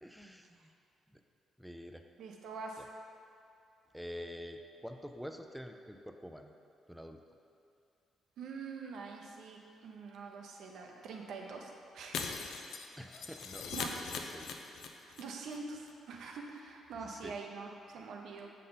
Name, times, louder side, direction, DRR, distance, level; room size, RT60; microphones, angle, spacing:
voice 1, 0.0-0.7 1.1-1.2 1.6-2.0 2.8-2.9 3.9-6.5 6.9-7.2 13.0-14.5 17.1-17.3, equal, ahead, 5 dB, 0.4 m, -47 dB
voice 2, 2.2-2.9 8.4-12.3 13.7-13.9 15.0-18.5, right 4 dB, 75° right, 1 dB, 0.6 m, -45 dB
Shatter, 12.1-15.2 15.5-15.6 15.9-16.0, left 5 dB, 75° left, 0.4 m, -40 dB
6.4 x 3.7 x 4.0 m, 2.5 s
supercardioid pair, 65°, 0 cm